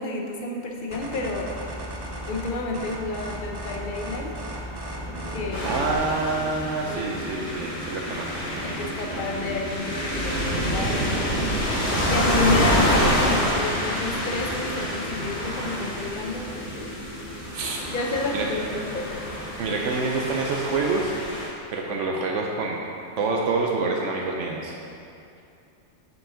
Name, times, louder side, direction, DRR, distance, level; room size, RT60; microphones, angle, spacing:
voice 1, 0.0-1.6 2.3-4.3 5.3-5.8 6.8-7.2 8.6-11.3 12.1-16.9 17.9-19.2, left 3 dB, 50° left, 1 dB, 0.8 m, -30 dB
sound 1, 0.9-6.0, equal, 25° right, 0.5 m, -35 dB
sound 2, 5.0-19.6, equal, 10° left, 1.0 m, -38 dB
sound 3, 5.5-21.5, equal, 80° left, 2.1 m, -27 dB
voice 2, 5.6-8.4 9.1-9.2 17.5-17.8 18.3-18.5 19.6-21.2 21.7-22.8 23.2-24.8, right 3 dB, 80° right, -1 dB, 1.0 m, -27 dB
6.8 x 5.7 x 3.9 m, 2.6 s
omnidirectional pair, 1.3 m